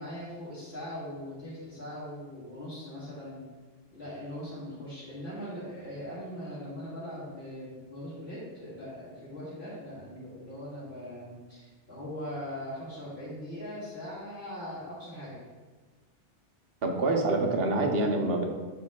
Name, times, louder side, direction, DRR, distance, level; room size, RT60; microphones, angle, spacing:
voice 1, 0.0-3.4 3.9-15.4, equal, 60° left, -12 dB, 2.4 m, -40 dB
voice 2, 16.8-18.4, right 2 dB, 60° right, 2 dB, 1.0 m, -26 dB
8.2 x 6.4 x 2.3 m, 1.4 s
omnidirectional pair, 1.2 m